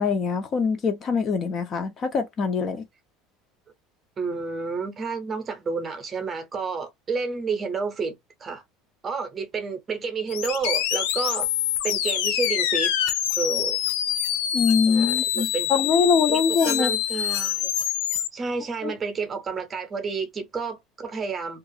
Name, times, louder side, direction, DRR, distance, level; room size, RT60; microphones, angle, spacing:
voice 1, 0.0-2.9 14.5-16.9 18.8-18.9, left 5 dB, 25° left, 0.5 m, -23 dB
voice 2, 4.2-8.6 9.0-11.5 11.8-12.9 13.4-13.8 14.9-15.7 16.3-17.7 18.3-21.6, right 4 dB, 20° right, 0.7 m, -30 dB
sound 1, 10.3-18.3, left 11 dB, 90° left, 0.5 m, -26 dB
2.4 x 2.3 x 2.6 m
cardioid pair, 170°, 0 cm